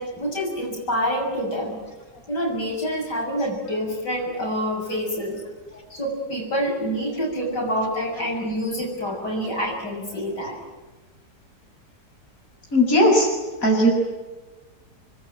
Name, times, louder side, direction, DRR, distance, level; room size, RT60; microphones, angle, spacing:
voice 1, 0.0-1.8 2.3-5.4 5.9-10.6, equal, 70° left, -1 dB, 7.8 m, -27 dB
voice 2, 12.7-13.3 13.6-13.9, equal, 50° left, -2 dB, 7.4 m, -18 dB
29.0 x 21.5 x 9.1 m, 1.3 s
omnidirectional pair, 1.9 m